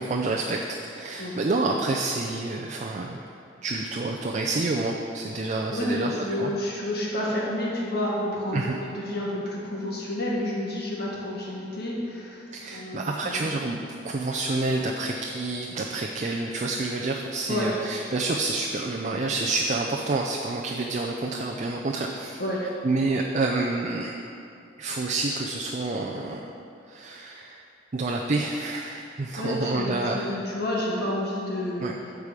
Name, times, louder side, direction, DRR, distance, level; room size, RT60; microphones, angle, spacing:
voice 1, 0.0-3.2 3.6-6.5 8.5-8.8 12.5-22.4 22.8-24.1 24.8-26.5 26.9-27.6 27.9-30.3 31.8-31.9, right 2 dB, 40° right, 0 dB, 0.5 m, -28 dB
voice 2, 5.7-13.5 17.5-17.7 22.4-22.6 29.4-31.8, left 1 dB, 60° left, -4 dB, 1.6 m, -30 dB
8.6 x 4.8 x 6.8 m, 2.6 s
head